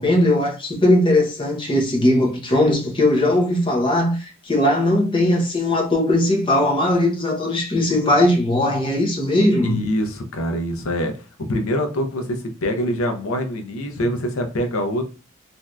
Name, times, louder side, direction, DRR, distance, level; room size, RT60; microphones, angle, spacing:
voice 1, 0.0-9.8, left 1 dB, 25° left, 0.7 m, -19 dB
voice 2, 9.6-11.1 11.5-15.0, equal, 75° left, 0.6 m, -24 dB
3.2 x 2.6 x 2.3 m
head